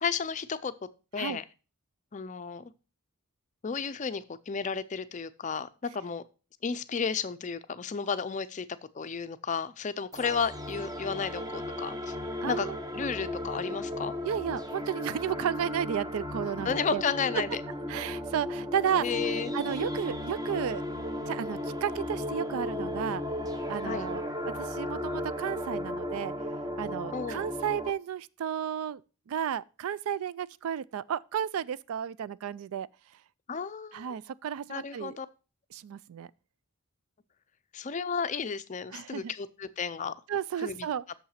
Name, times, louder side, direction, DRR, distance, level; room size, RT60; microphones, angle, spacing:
voice 1, 0.0-0.7 1.1-1.4 2.1-2.7 3.6-6.2 6.6-8.7 8.9-12.2 12.5-14.1 16.6-17.5 19.0-19.5 23.8-24.1 27.1-27.5 33.5-34.2 34.7-35.3 37.7-40.1 40.6-40.9, left 6 dB, 35° left, 0.4 m, -33 dB
sound 1, 10.1-27.9, left 1 dB, 15° right, 0.7 m, -35 dB
voice 2, 12.4-12.8 14.2-17.0 17.9-19.1 19.5-20.8 21.3-24.2 24.6-26.3 26.8-29.0 29.3-32.9 33.9-35.2 35.7-36.3 38.9-39.3 40.3-41.0, right 9 dB, 75° right, 0.3 m, -33 dB
6.7 x 5.7 x 5.6 m
head